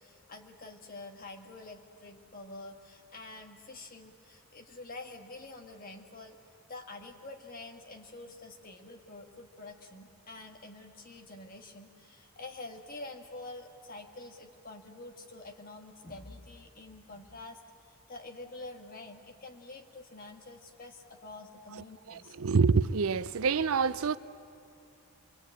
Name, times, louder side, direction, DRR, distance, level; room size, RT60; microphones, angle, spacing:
voice 1, 0.0-6.4 6.7-17.6 17.9-22.4, left 2 dB, 40° left, 1.8 m, -47 dB
voice 2, 21.7-24.2, right 5 dB, 70° right, 0.5 m, -27 dB
26.0 x 22.0 x 8.8 m
head